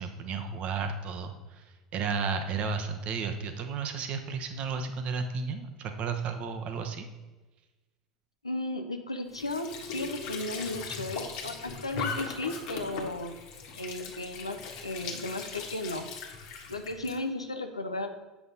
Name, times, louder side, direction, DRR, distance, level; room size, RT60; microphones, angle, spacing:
voice 1, 0.0-7.0, right 5 dB, 45° right, 7 dB, 1.0 m, -33 dB
voice 2, 8.4-13.3 13.8-14.6 14.8-16.0 16.7-18.1, left 2 dB, 90° left, 6 dB, 0.6 m, -35 dB
Squeak / Sink (filling or washing) / Trickle dribble, 9.3-17.2, left 5 dB, 60° left, 1.4 m, -39 dB
8.2 x 5.8 x 4.0 m, 1.2 s
figure-of-eight pair, 75°, 3 cm